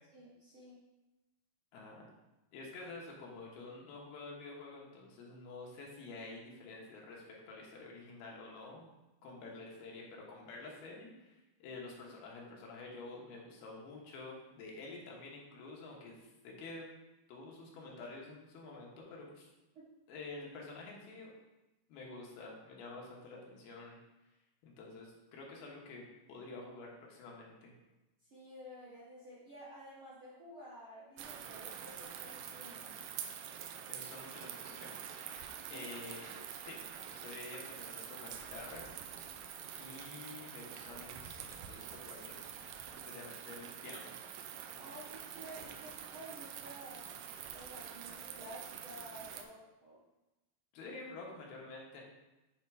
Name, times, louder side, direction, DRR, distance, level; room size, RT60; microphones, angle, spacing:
voice 1, 0.1-0.8 19.7-19.9 28.2-33.0 35.6-35.9 44.8-47.3 47.5-50.0, equal, 55° right, -9 dB, 1.5 m, -52 dB
voice 2, 1.7-2.1 2.5-8.9 9.2-16.9 17.3-19.5 20.1-21.3 21.9-24.0 24.6-26.0 26.3-27.7 33.5-34.9 35.7-36.3 36.6-36.8 37.1-38.9 39.8-44.1 50.7-52.0, left 3 dB, 85° left, -2 dB, 3.2 m, -49 dB
sound 1, 31.2-49.4, right 9 dB, 80° right, 2.3 m, -46 dB
8.3 x 3.4 x 4.8 m, 1.0 s
omnidirectional pair, 4.3 m